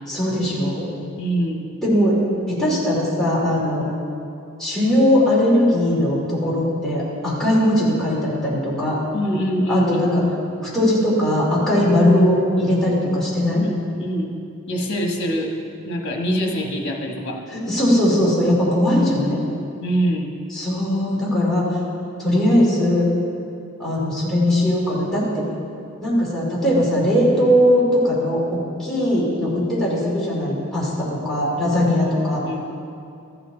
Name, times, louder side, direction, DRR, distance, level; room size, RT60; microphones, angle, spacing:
voice 1, 0.1-0.9 1.8-2.2 2.5-3.8 4.6-9.0 9.7-10.2 10.7-13.6 17.5-19.4 20.5-21.7 22.2-23.1 23.8-25.5 26.0-32.4, left 1 dB, ahead, -8 dB, 2.6 m, -19 dB
voice 2, 1.2-1.6 9.1-10.0 13.5-14.3 14.7-15.5 15.8-17.4 19.8-20.3 32.4-32.6, equal, 55° left, 1 dB, 1.5 m, -24 dB
14.0 x 8.0 x 3.9 m, 2.5 s
head